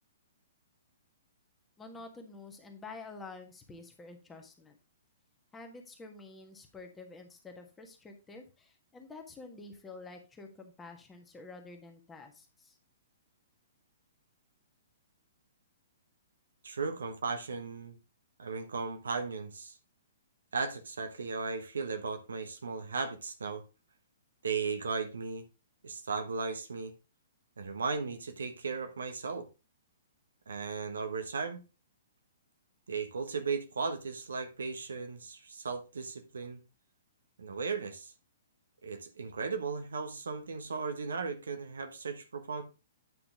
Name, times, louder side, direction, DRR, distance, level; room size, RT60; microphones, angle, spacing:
voice 1, 1.8-4.8 5.5-12.8, left 3 dB, 10° left, 1.5 m, -49 dB
voice 2, 16.6-18.0 18.4-19.8 20.5-23.6 24.4-25.4 25.8-26.9 27.6-29.5 30.5-31.6 32.9-36.6 37.4-38.1 38.8-42.6, right 4 dB, 65° right, 1.2 m, -36 dB
9.2 x 5.8 x 3.6 m
figure-of-eight pair, 115°, 0 cm